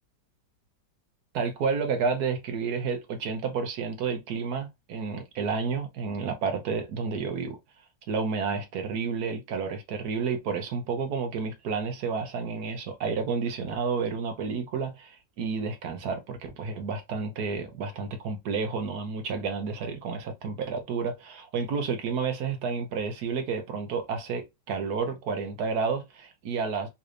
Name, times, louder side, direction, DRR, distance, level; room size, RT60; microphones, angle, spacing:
voice 1, 1.3-7.6 8.1-26.9, right 5 dB, 65° right, 1.2 m, -30 dB
3.8 x 3.2 x 2.5 m
omnidirectional pair, 2.0 m